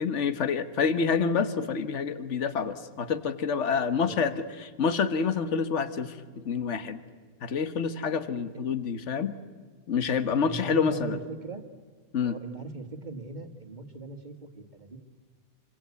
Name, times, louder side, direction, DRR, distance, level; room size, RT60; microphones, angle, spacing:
voice 1, 0.0-4.3 4.6-6.2 6.4-7.0 7.4-9.3 9.9-11.2 12.1-12.4, left 6 dB, 55° left, 11 dB, 1.6 m, -27 dB
voice 2, 10.4-11.6 12.2-15.0, right 3 dB, 30° right, 7 dB, 1.9 m, -40 dB
27.0 x 25.0 x 8.4 m, 1.5 s
omnidirectional pair, 1.5 m